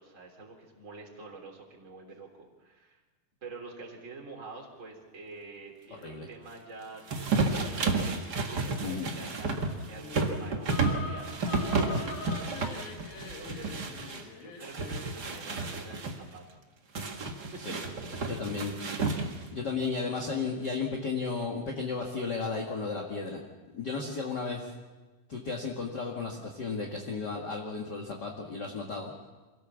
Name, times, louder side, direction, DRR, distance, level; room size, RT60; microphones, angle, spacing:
voice 1, 0.0-3.0 3.4-11.2 11.5-16.4 17.4-17.6 18.6-19.0, right 3 dB, 20° right, 0 dB, 3.4 m, -48 dB
sound 1, 7.1-14.2 14.6-16.2 17.0-19.5, right 3 dB, 40° right, 1.6 m, -31 dB
voice 2, 8.8-9.1 17.6-17.7 18.3-18.7 19.5-23.4 23.7-24.7 25.3-29.1, left 4 dB, 40° left, 0 dB, 1.8 m, -34 dB
sound 2, 9.9-15.2, left 4 dB, 80° left, 4.0 m, -43 dB
26.0 x 17.5 x 7.3 m, 1.2 s
omnidirectional pair, 4.2 m